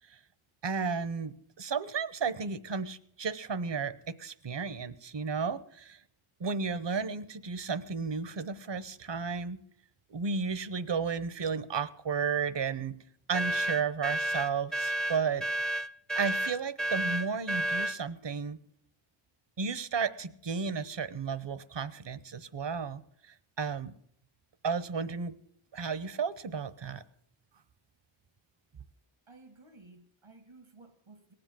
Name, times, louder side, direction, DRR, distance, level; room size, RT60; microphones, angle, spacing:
voice 1, 0.6-6.0 6.4-9.6 10.1-13.0 13.3-15.4 16.1-18.6 19.6-23.9 24.6-25.3 25.7-27.0, right 5 dB, 60° right, 0.9 m, -33 dB
sound 1, 13.3-18.0, right 1 dB, ahead, 0.7 m, -31 dB
voice 2, 29.3-31.3, right 3 dB, 85° right, 1.7 m, -55 dB
18.5 x 7.9 x 7.6 m
wide cardioid pair, 40°, 49 cm